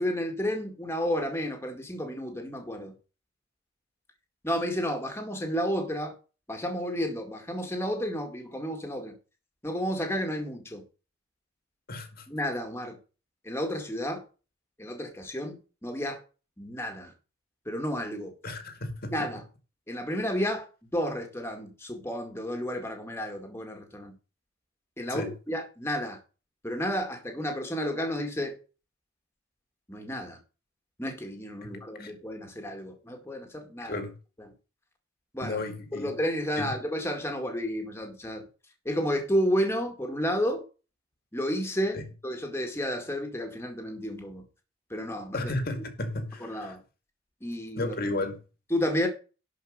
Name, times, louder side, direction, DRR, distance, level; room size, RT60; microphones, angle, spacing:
voice 1, 0.0-2.9 4.4-6.1 6.5-9.1 9.6-10.8 12.3-13.0 13.4-14.2 14.8-16.2 16.6-17.1 17.7-18.3 19.1-19.4 19.9-20.7 20.9-24.1 25.0-26.2 26.6-28.6 29.9-30.4 31.0-34.0 35.3-35.6 35.9-38.4 38.9-40.6 41.3-44.4 44.9-45.5 46.4-46.8 47.4-47.9 48.7-49.1, equal, 10° left, 2.1 m, -31 dB
voice 2, 11.9-12.3 18.4-19.1 25.1-25.3 31.6-31.7 32.0-32.1 33.8-34.1 35.4-36.1 36.6-36.7 41.9-42.0 45.3-46.8 47.8-48.4, left 2 dB, 50° left, 2.0 m, -33 dB
11.5 x 5.2 x 6.6 m
head